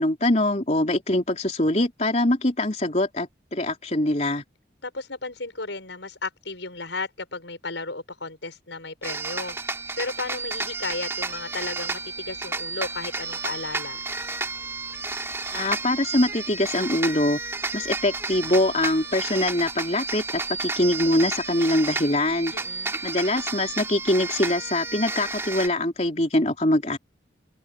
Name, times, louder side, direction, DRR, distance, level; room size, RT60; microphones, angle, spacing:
voice 1, 0.0-4.4 15.5-17.4 17.7-22.5 23.0-27.0, left 1 dB, 35° left, 3.9 m, -23 dB
voice 2, 4.8-9.6 10.0-14.0 22.5-23.0, left 3 dB, 85° left, 6.3 m, -34 dB
sound 1, 9.0-25.7, right 3 dB, 15° right, 3.2 m, -32 dB
head